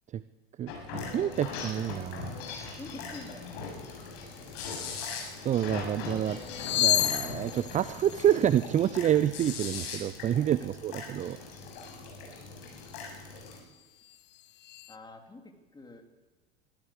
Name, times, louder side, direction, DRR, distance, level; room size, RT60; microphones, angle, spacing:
voice 1, 0.6-2.3 5.4-6.4 6.8-11.4, right 10 dB, 20° right, 16 dB, 0.6 m, -28 dB
sound 1, 0.7-13.6, left 4 dB, 55° left, 7.6 m, -40 dB
voice 2, 2.6-3.4 10.6-10.7 11.2-11.3 14.9-16.0, left 2 dB, 15° left, 3 dB, 3.6 m, -47 dB
sound 2, 4.5-4.6 4.9-5.4 6.3-9.4 11.7-12.0 12.8-13.1 13.4-15.0, left 13 dB, 35° left, 0.8 m, -33 dB
24.0 x 14.5 x 8.2 m, 1.2 s
figure-of-eight pair, 80°, 32 cm